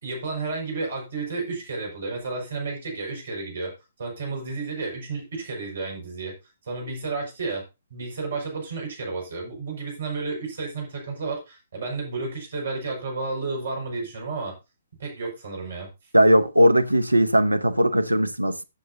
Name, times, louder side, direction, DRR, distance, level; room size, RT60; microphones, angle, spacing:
voice 1, 0.0-3.7 4.0-6.3 6.6-7.6 7.9-14.6 15.0-15.9, right 3 dB, 60° right, 5.7 m, -32 dB
voice 2, 16.1-18.6, equal, 90° right, 0.9 m, -19 dB
15.0 x 7.9 x 2.7 m
figure-of-eight pair, 125°, 0 cm